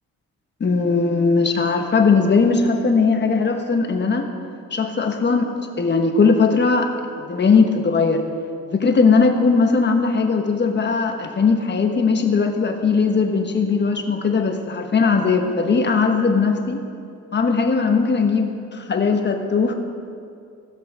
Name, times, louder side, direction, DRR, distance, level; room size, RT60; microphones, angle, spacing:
voice 1, 0.6-4.3 4.7-6.9 7.2-8.2 8.7-16.8 17.3-19.7, left 4 dB, 35° left, 4 dB, 1.3 m, -19 dB
17.0 x 6.1 x 4.8 m, 2.5 s
cardioid pair, 90°, 30 cm